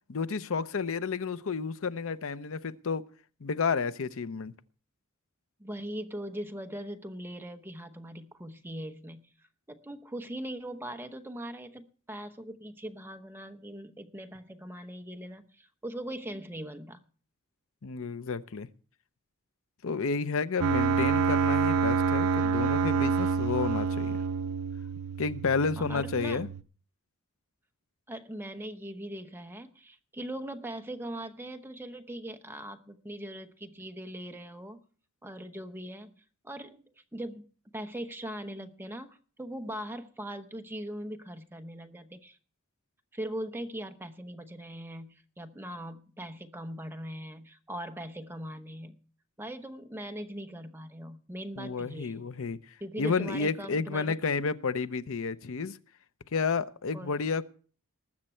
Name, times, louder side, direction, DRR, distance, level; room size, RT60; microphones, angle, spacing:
voice 1, 0.1-3.0 3.4-4.5 17.8-18.7 19.8-24.2 25.2-26.5 51.6-52.6 53.0-55.8 56.3-57.4, left 4 dB, 65° left, 0.6 m, -31 dB
voice 2, 5.6-9.3 9.7-17.0 25.8-26.5 28.1-34.8 35.2-36.8 37.1-37.5 37.7-42.4 43.1-49.0 49.4-52.3 52.8-54.1 56.9-57.2, right 1 dB, 10° right, 0.9 m, -40 dB
sound 1, 20.6-26.6, right 5 dB, 75° right, 0.6 m, -27 dB
20.0 x 7.4 x 4.4 m
head